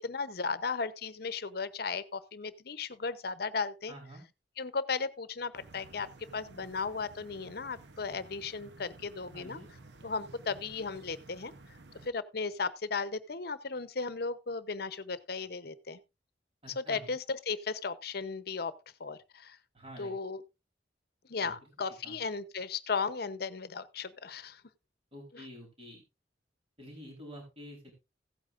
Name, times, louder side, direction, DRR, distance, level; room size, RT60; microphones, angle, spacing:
voice 1, 0.0-3.9 4.6-6.1 6.3-9.6 10.0-11.5 12.0-16.0 16.8-18.7 19.0-19.6 20.0-20.4 21.3-24.6 25.3-25.4, left 4 dB, 60° left, 0.8 m, -36 dB
voice 2, 3.9-4.2 9.3-9.7 16.6-17.1 19.7-20.1 21.4-21.5 22.0-22.2 25.1-26.0 26.8-27.9, equal, 35° right, 4.0 m, -48 dB
sound 1, 5.5-12.1, right 2 dB, 75° right, 0.9 m, -54 dB
16.0 x 8.8 x 2.5 m
head